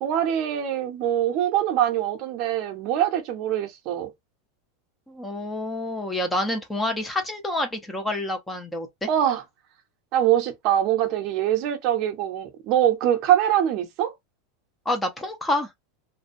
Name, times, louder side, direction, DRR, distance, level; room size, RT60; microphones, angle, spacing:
voice 1, 0.0-4.1 9.1-9.4 10.1-14.1, right 11 dB, 40° right, 0.6 m, -23 dB
voice 2, 5.1-9.1 14.9-15.7, left 1 dB, 5° left, 0.4 m, -28 dB
2.5 x 2.1 x 2.5 m
supercardioid pair, 160°, 0 cm